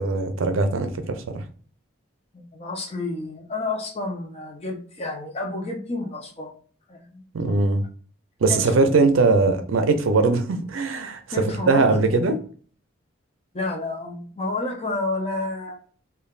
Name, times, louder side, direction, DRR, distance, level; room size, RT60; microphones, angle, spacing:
voice 1, 0.0-1.4 7.3-7.8 8.4-12.4, right 3 dB, 85° right, 7 dB, 0.5 m, -21 dB
voice 2, 2.3-6.5 6.9-7.6 8.5-8.7 11.3-12.2 13.5-15.8, left 2 dB, 30° left, 2 dB, 0.6 m, -30 dB
3.2 x 2.2 x 2.4 m, 0.43 s
head